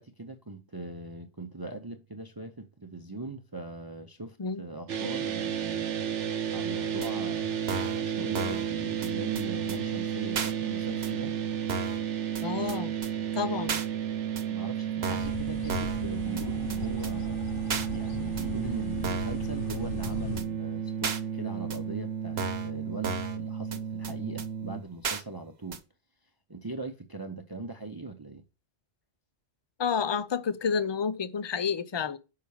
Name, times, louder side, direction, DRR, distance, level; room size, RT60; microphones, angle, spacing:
voice 1, 0.0-6.0 6.2-11.3 14.5-17.5 17.9-25.8 26.5-28.4, right 2 dB, 25° right, 0.7 m, -40 dB
sound 1, 4.9-24.8, right 8 dB, 80° right, 1.1 m, -32 dB
sound 2, 7.0-7.1 7.7-8.0 8.3-8.7 9.0-9.1 9.3-9.4 9.7-9.8 10.3-10.5 11.0-11.1 11.7-12.0 12.3-12.4 12.7-12.8 13.0-13.1 13.7-13.9 14.4-14.5 15.0-15.4 15.7-16.0 16.4-16.5 16.7-16.8 17.0-17.1 17.7-17.9 18.4-18.5 19.0-19.4 19.7-19.8 20.0-20.1 20.4-20.5 21.0-21.2 21.7-21.8 22.4-22.7 23.0-23.4 23.7-23.8 24.0-24.1 24.4-24.5 25.0-25.2 25.7-25.8, right 4 dB, 60° right, 1.2 m, -33 dB
voice 2, 12.4-12.9 13.3-13.8 29.8-32.2, left 6 dB, 40° left, 0.4 m, -30 dB
sound 3, 15.2-20.4, left 3 dB, 55° left, 1.0 m, -38 dB
6.3 x 5.8 x 7.0 m
omnidirectional pair, 1.2 m